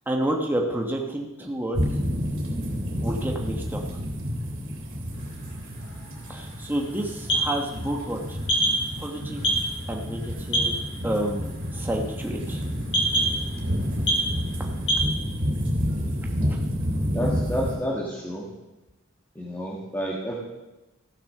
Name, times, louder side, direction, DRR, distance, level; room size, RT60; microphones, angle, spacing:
voice 1, 0.1-1.8 3.0-4.0 6.3-8.4 9.0-9.4 9.9-10.7 11.0-12.6 16.5-16.6, right 1 dB, 10° right, 0 dB, 1.1 m, -29 dB
sound 1, 1.7-17.8, equal, 60° right, 3.1 m, -30 dB
sound 2, 5.1-15.1, right 1 dB, 60° left, 2.6 m, -29 dB
voice 2, 17.1-18.4 19.3-20.3, equal, 10° left, -4 dB, 1.6 m, -30 dB
15.0 x 7.1 x 6.6 m, 1.0 s
head